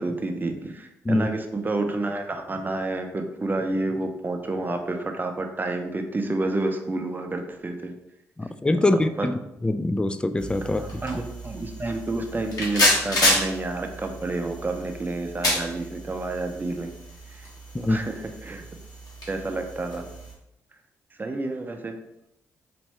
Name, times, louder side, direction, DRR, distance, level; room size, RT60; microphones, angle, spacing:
voice 1, 0.0-7.9 9.2-9.3 10.8-16.9 17.8-18.1 18.4-18.6 19.3-20.1 21.2-21.9, right 2 dB, 25° right, 0.7 m, -29 dB
voice 2, 8.4-11.0 17.7-18.0, left 2 dB, 10° left, 0.3 m, -24 dB
sound 1, 10.4-20.3, left 1 dB, 50° left, 1.5 m, -29 dB
4.1 x 2.6 x 3.3 m
hypercardioid pair, 40°, 8 cm